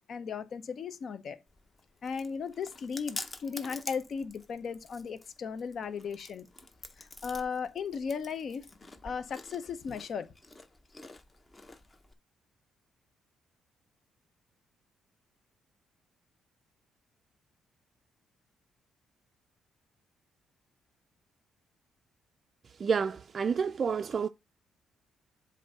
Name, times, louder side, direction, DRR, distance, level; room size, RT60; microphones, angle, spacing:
voice 1, 0.1-1.4 2.0-6.5 7.0-8.7 9.0-10.3, left 6 dB, 55° left, 0.7 m, -36 dB
Chewing mastication, 1.5-12.1, left 2 dB, 25° left, 0.8 m, -48 dB
voice 2, 22.8-24.3, right 6 dB, 45° right, 0.3 m, -29 dB
7.5 x 2.6 x 5.4 m
cardioid pair, 90°, 0 cm